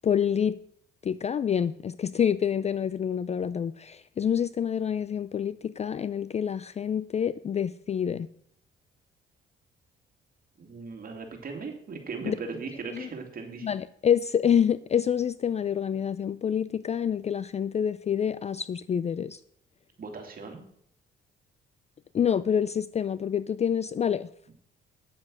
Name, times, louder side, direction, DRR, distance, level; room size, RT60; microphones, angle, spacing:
voice 1, 0.0-0.6 1.0-8.3 12.3-12.4 12.9-13.1 13.6-19.4 22.1-24.3, left 8 dB, 35° left, 16 dB, 0.4 m, -27 dB
voice 2, 10.6-13.7 20.0-20.6 24.5-24.6, right 4 dB, 45° right, 3 dB, 2.6 m, -38 dB
9.6 x 7.4 x 6.2 m, 0.67 s
cardioid pair, 90°, 20 cm